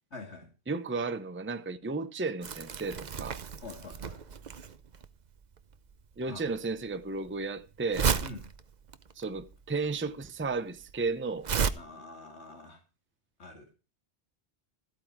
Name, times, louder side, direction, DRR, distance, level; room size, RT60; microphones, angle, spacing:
voice 1, 0.1-0.5 3.6-4.2 6.3-6.4 8.2-8.4 11.8-12.8 13.4-13.7, left 3 dB, 75° left, 2.8 m, -45 dB
voice 2, 0.7-3.4 6.2-8.1 9.2-11.5, right 4 dB, 15° right, 0.6 m, -33 dB
Crumpling crinkling, 2.4-11.7, right 6 dB, 45° right, 0.8 m, -34 dB
14.0 x 8.6 x 4.6 m
omnidirectional pair, 1.2 m